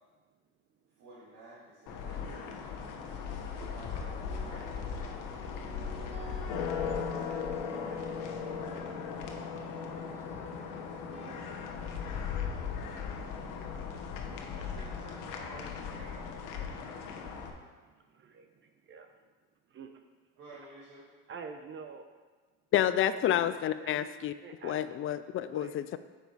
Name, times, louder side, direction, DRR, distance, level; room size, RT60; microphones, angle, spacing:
voice 1, 0.9-2.6 3.7-5.4 6.5-10.5 11.0-11.7 14.5-16.4 20.4-21.1, right 2 dB, 70° right, -8 dB, 2.4 m, -52 dB
sound 1, 1.9-17.5, left 6 dB, 70° left, 1.1 m, -38 dB
sound 2, 4.2-11.8, right 4 dB, 20° right, 1.3 m, -51 dB
voice 2, 17.9-19.1 19.7-19.9 21.3-22.0 23.0-24.8 25.5-25.7, right 5 dB, 35° right, 7 dB, 0.6 m, -48 dB
voice 3, 22.7-24.3 24.6-26.0, left 11 dB, 40° left, 13 dB, 0.4 m, -29 dB
7.0 x 5.3 x 4.7 m, 1.4 s
supercardioid pair, 100°, 33 cm